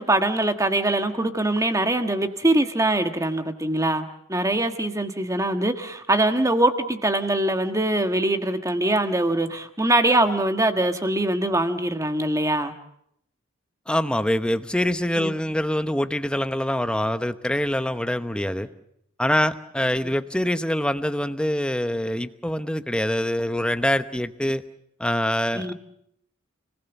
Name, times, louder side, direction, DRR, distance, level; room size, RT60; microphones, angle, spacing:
voice 1, 0.0-12.7 15.2-15.3 25.5-25.7, right 1 dB, 15° right, 7 dB, 1.4 m, -23 dB
voice 2, 13.9-18.7 19.2-24.6 25.0-25.7, left 1 dB, 5° left, 10 dB, 0.9 m, -24 dB
30.0 x 19.0 x 7.1 m, 0.75 s
head